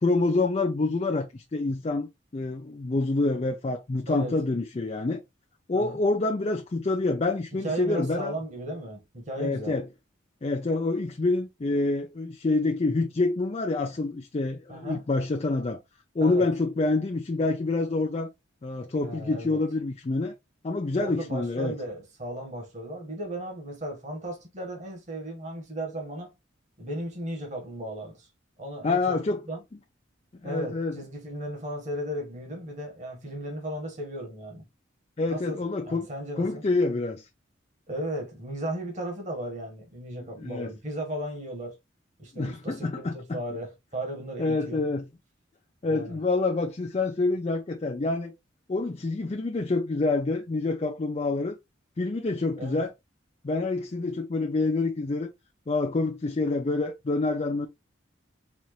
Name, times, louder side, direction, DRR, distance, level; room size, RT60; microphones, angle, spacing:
voice 1, 0.0-5.2 5.7-8.3 9.4-9.9 10.4-15.8 16.1-18.3 18.6-20.3 20.6-21.8 28.8-29.4 30.4-31.0 35.2-36.1 36.4-37.3 40.4-40.7 42.3-43.4 44.4-45.1 45.8-48.3 48.7-51.6 52.0-52.9 53.4-55.3 55.7-57.7, left 3 dB, 30° left, 0.4 m, -27 dB
voice 2, 4.1-4.4 5.7-6.0 7.6-9.7 14.7-15.0 16.2-16.5 19.0-19.6 21.0-26.3 26.8-28.3 28.6-29.6 30.4-34.6 35.3-36.6 37.9-41.8 42.2-44.8 45.9-46.2 52.6-52.8, right 1 dB, 40° right, 1.4 m, -36 dB
4.3 x 2.5 x 3.0 m
head